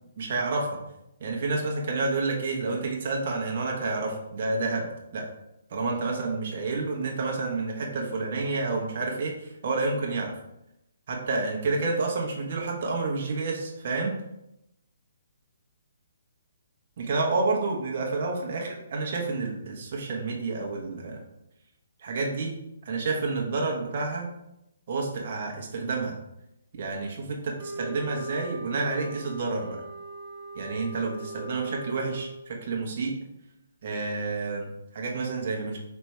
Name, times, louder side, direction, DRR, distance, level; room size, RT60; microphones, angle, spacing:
voice 1, 0.2-0.7 1.2-5.3 5.7-10.3 11.1-14.1 17.0-21.2 22.0-22.6 22.8-24.3 24.9-26.1 26.7-29.8 30.5-33.1 33.8-35.8, right 3 dB, 50° right, 0 dB, 1.0 m, -29 dB
sound 1, 27.6-32.5, right 2 dB, 35° right, 0.6 m, -40 dB
4.4 x 3.3 x 3.2 m, 0.86 s
figure-of-eight pair, 140°, 0 cm